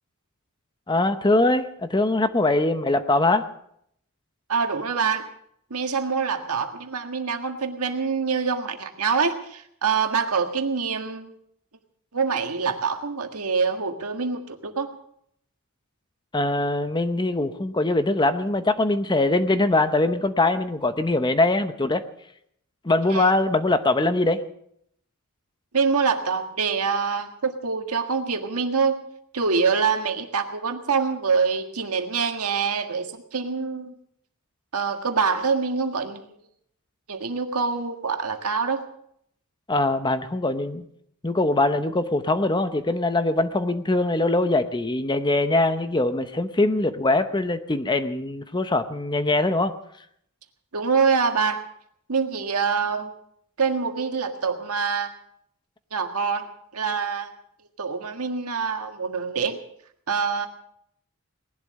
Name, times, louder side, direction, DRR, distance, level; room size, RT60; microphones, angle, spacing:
voice 1, 0.9-3.5 16.3-22.0 22.8-24.4 39.7-40.8 41.2-49.7, left 2 dB, 20° left, 10 dB, 0.7 m, -22 dB
voice 2, 4.5-5.3 5.7-11.3 12.1-14.9 23.1-23.3 25.7-29.0 29.3-33.9 34.7-36.2 37.1-38.8 50.7-51.6 52.1-53.1 53.6-55.1 55.9-56.5 56.7-57.3 57.8-59.6 60.1-60.5, right 5 dB, 80° right, 5 dB, 1.7 m, -25 dB
19.0 x 11.5 x 6.4 m, 0.70 s
head